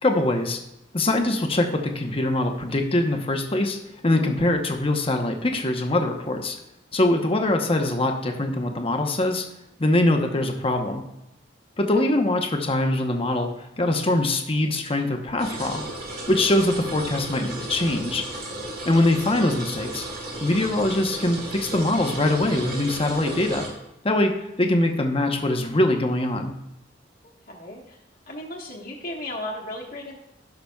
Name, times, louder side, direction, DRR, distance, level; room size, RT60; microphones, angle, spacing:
voice 1, 0.0-0.6 0.9-6.6 6.9-9.5 9.8-11.0 11.8-15.8 16.3-18.2 18.8-20.0 20.4-23.7 24.0-26.5, left 1 dB, 30° left, 4 dB, 0.9 m, -23 dB
sound 1, 15.4-23.7, right 1 dB, 55° right, 2.3 m, -34 dB
voice 2, 27.2-28.0 28.3-30.2, left 1 dB, 50° left, -2 dB, 1.4 m, -36 dB
17.0 x 5.9 x 2.3 m, 0.88 s
head